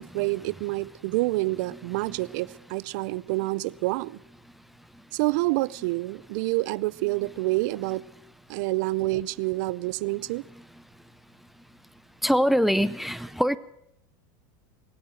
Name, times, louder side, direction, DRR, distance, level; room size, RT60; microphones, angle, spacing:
voice 1, 0.0-4.2 5.1-8.0 8.5-10.4, right 21 dB, 65° right, 22 dB, 0.5 m, -28 dB
voice 2, 12.2-13.6, equal, ahead, 17 dB, 0.5 m, -23 dB
21.0 x 8.7 x 7.6 m, 0.79 s
supercardioid pair, 115°, 11 cm